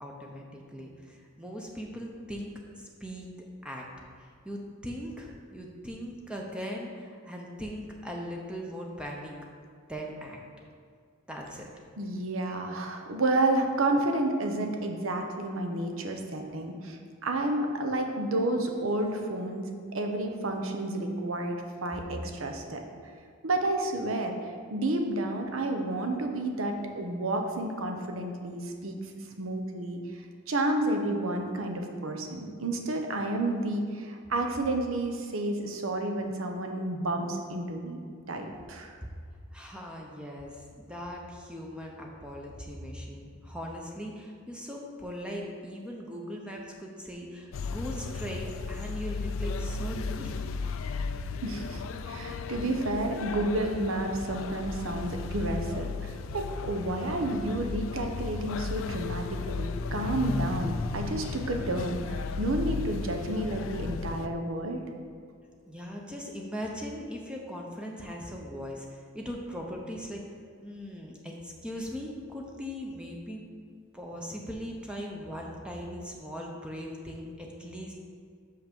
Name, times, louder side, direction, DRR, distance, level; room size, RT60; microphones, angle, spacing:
voice 1, 0.0-3.3 3.6-3.9 4.2-9.3 9.9-10.4 11.3-11.7 39.5-50.6 65.7-70.2 70.6-73.4 73.9-77.9, equal, 5° right, -1 dB, 0.6 m, -39 dB
voice 2, 12.0-22.8 23.4-29.0 29.4-30.0 30.5-38.0 38.3-38.9 51.4-64.8, right 2 dB, 75° right, 4 dB, 0.9 m, -30 dB
sound 1, 47.5-64.3, left 4 dB, 70° left, 0.4 m, -35 dB
5.9 x 5.7 x 5.2 m, 2.2 s
head